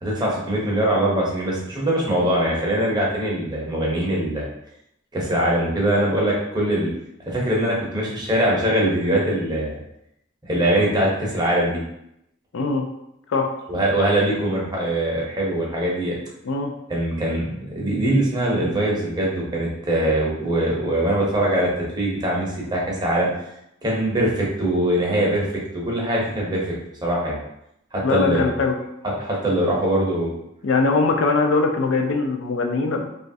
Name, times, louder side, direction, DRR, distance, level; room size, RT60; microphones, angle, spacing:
voice 1, 0.0-4.5 5.1-6.9 7.3-9.8 10.4-11.8 13.7-16.2 16.9-21.7 22.0-23.3 23.8-25.5 25.7-26.6 27.0-27.4 27.9-28.5 29.2-30.3, right 1 dB, 20° right, -4 dB, 0.7 m, -22 dB
voice 2, 12.5-12.9 13.3-13.5 16.4-16.7 28.0-28.7 30.6-33.0, left 3 dB, 70° left, 3 dB, 0.4 m, -21 dB
3.0 x 2.4 x 2.6 m, 0.81 s
head